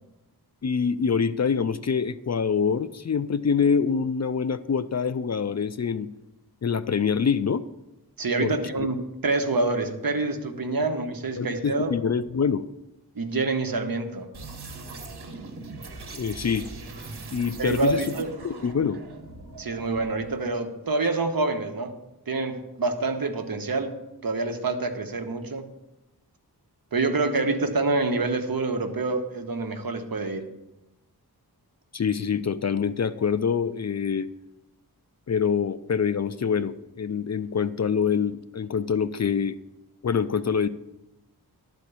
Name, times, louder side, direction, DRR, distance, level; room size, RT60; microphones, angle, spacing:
voice 1, 0.6-6.1 6.6-7.6 8.4-8.9 11.4-12.7 16.1-16.6 17.3-18.0 18.4-19.0 31.9-34.3 35.3-39.6 40.0-40.7, left 6 dB, 45° left, 14 dB, 0.5 m, -25 dB
voice 2, 8.2-9.0 9.2-11.9 13.1-14.3 17.6-18.3 19.6-21.9 22.3-23.9 24.2-25.7 26.9-30.4, right 3 dB, 65° right, 6 dB, 1.2 m, -26 dB
sound 1, 14.3-20.5, right 3 dB, 85° right, 1.3 m, -41 dB
12.5 x 4.5 x 8.3 m, 0.94 s
wide cardioid pair, 75°, 38 cm